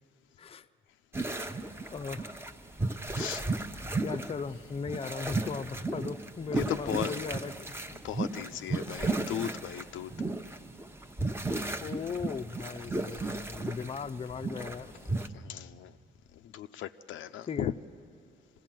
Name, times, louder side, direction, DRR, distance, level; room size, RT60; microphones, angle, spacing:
sound 1, 1.1-15.3, right 2 dB, 10° right, 0.8 m, -35 dB
voice 1, 1.9-2.4 4.0-8.0 11.8-14.9 17.5-17.7, left 5 dB, 30° left, 9 dB, 0.5 m, -38 dB
voice 2, 3.1-3.4 6.6-7.1 8.0-10.1 13.0-13.3 15.3-15.9 16.3-17.7, left 11 dB, 80° left, 9 dB, 0.5 m, -36 dB
25.0 x 16.0 x 7.5 m, 2.5 s
cardioid pair, 90°, 20 cm